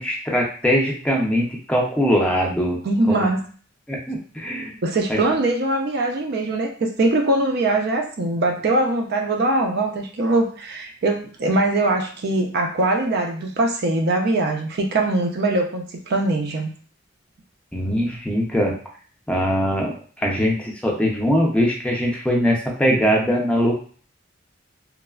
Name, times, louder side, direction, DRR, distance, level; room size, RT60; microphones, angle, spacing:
voice 1, 0.0-2.8 3.1-3.3 3.9-4.7 5.1-5.2 17.7-18.8 19.3-23.7, equal, 5° left, -2 dB, 0.5 m, -21 dB
voice 2, 2.8-3.4 4.8-16.7, right 2 dB, 55° right, 2 dB, 0.4 m, -22 dB
3.1 x 2.0 x 2.3 m, 0.42 s
head